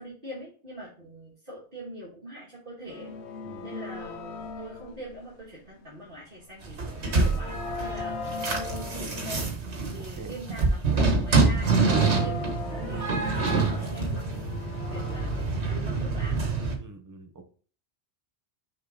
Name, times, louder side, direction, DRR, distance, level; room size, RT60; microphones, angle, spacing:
voice 1, 0.0-3.4 3.6-16.4, right 1 dB, 50° right, -6 dB, 2.1 m, -43 dB
sound 1, 2.9-5.8 6.5-9.5 11.7-15.7, left 4 dB, 85° left, 1.0 m, -39 dB
sound 2, 6.6-16.8, right 3 dB, 80° right, 1.7 m, -26 dB
voice 2, 10.0-10.4 16.8-17.4, right 3 dB, 20° right, 5 dB, 0.9 m, -45 dB
6.5 x 4.6 x 3.9 m, 0.42 s
omnidirectional pair, 1.1 m